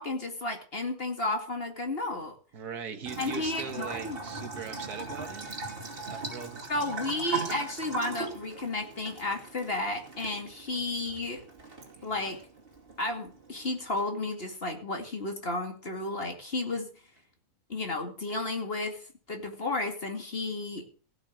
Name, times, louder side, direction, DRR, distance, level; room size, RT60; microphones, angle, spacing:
voice 1, 0.0-2.4 3.2-4.2 6.7-11.4 12.0-12.4 13.0-16.9 17.7-19.0 19.3-20.9, left 2 dB, 40° left, 2.5 m, -33 dB
voice 2, 2.5-5.5 6.0-6.9 11.9-12.3, right 6 dB, 85° right, 2.0 m, -40 dB
Bathtub (filling or washing) / Trickle dribble, 3.1-14.0, right 4 dB, 35° right, 2.7 m, -39 dB
16.0 x 6.4 x 7.3 m
omnidirectional pair, 1.6 m